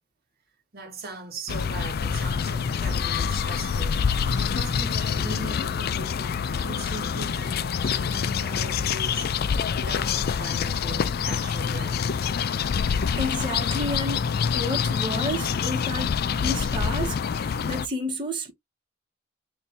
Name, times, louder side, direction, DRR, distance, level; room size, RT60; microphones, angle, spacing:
voice 1, 0.7-4.0 4.4-9.3 9.8-12.0, right 3 dB, 50° right, 1.2 m, -40 dB
sound 1, 1.5-17.9, left 6 dB, 50° left, 0.4 m, -26 dB
voice 2, 12.8-14.3 14.5-18.5, equal, 25° right, 1.2 m, -31 dB
4.3 x 2.7 x 3.2 m
head